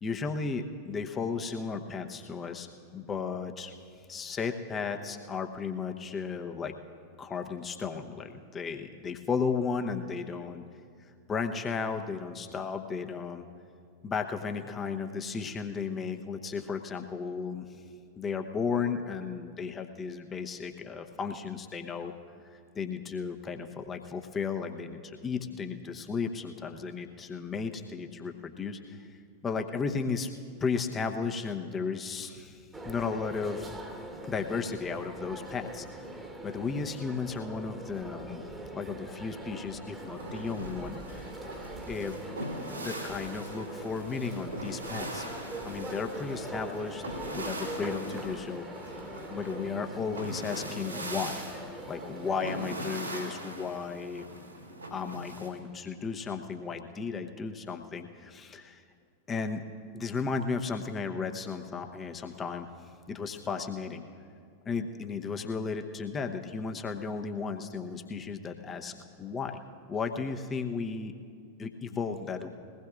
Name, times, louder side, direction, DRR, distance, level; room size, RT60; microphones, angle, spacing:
voice 1, 0.0-3.7 4.1-6.7 7.2-10.6 11.3-13.4 14.0-17.7 18.2-22.1 22.7-29.2 29.4-30.3 30.6-33.7 34.3-38.4 38.7-41.3 41.9-42.2 42.8-45.3 45.6-48.7 49.3-51.4 51.9-54.3 54.9-58.8 59.3-59.6 59.9-62.7 63.1-64.0 64.6-69.6 69.9-71.1 71.6-72.5, left 5 dB, 20° left, 6 dB, 0.9 m, -34 dB
sound 1, 32.7-52.6, right 1 dB, 10° right, 1.3 m, -42 dB
sound 2, 40.0-55.5, right 1 dB, 80° right, 2.5 m, -41 dB
21.5 x 18.5 x 2.5 m, 2.3 s
figure-of-eight pair, 90°, 0 cm